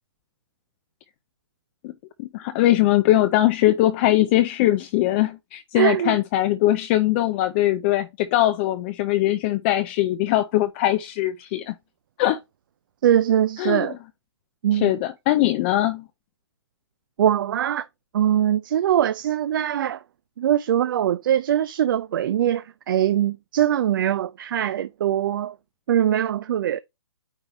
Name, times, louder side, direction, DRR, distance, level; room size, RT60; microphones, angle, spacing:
voice 1, 2.2-11.7 12.2-12.4 13.6-13.9 14.7-16.0, left 15 dB, 25° left, 0.4 m, -21 dB
voice 2, 5.8-6.1 13.0-14.0 14.6-14.9 17.2-17.9 18.1-20.0 20.4-25.5 25.9-26.8, right 10 dB, 50° right, 0.4 m, -22 dB
9.0 x 3.3 x 3.9 m
hypercardioid pair, 140°, 14 cm